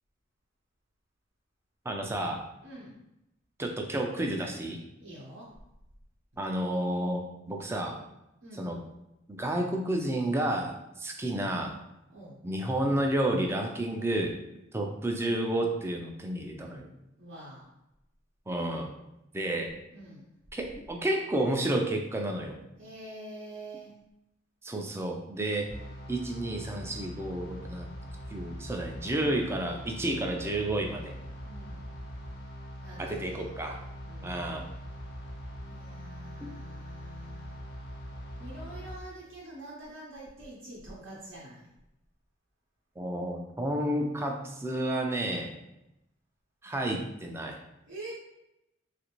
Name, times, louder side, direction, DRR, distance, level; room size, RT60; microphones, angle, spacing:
voice 1, 1.9-2.4 3.6-4.8 6.4-8.0 8.6-8.8 9.3-11.7 12.4-14.3 14.7-16.9 18.5-18.9 19.3-19.7 20.5-22.6 24.6-25.7 26.1-27.9 28.3-31.1 33.0-33.8 34.2-34.7 36.4-36.6 43.0-45.5 46.6-47.6, right 1 dB, 10° right, 2 dB, 0.3 m, -31 dB
voice 2, 2.6-3.0 5.0-5.5 8.4-8.7 12.1-12.4 17.2-17.7 19.9-20.3 22.8-23.9 31.3-31.9 32.8-33.5 34.0-34.5 35.7-37.6 38.4-41.7 47.9-48.1, right 1 dB, 70° right, -6 dB, 0.7 m, -46 dB
sound 1, 25.7-39.0, equal, 60° left, 0.5 m, -42 dB
3.2 x 2.5 x 2.9 m, 0.89 s
head